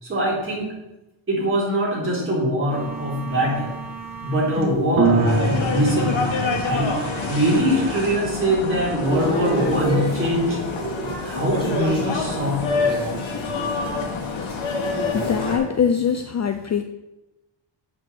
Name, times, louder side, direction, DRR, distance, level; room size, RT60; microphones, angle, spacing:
voice 1, 0.0-0.7 1.3-3.8 4.2-6.2 6.6-6.9 7.3-10.6 11.2-13.2, equal, 25° right, -5 dB, 3.6 m, -23 dB
sound 1, 2.7-8.0, right 3 dB, 45° right, 1.9 m, -26 dB
sound 2, 5.3-15.6, left 4 dB, 75° left, 1.6 m, -27 dB
sound 3, 9.0-15.6, right 2 dB, 10° left, 3.6 m, -30 dB
voice 2, 15.1-16.8, left 7 dB, 35° left, 8 dB, 0.5 m, -22 dB
7.8 x 6.1 x 7.5 m, 0.99 s
wide cardioid pair, 170°, 46 cm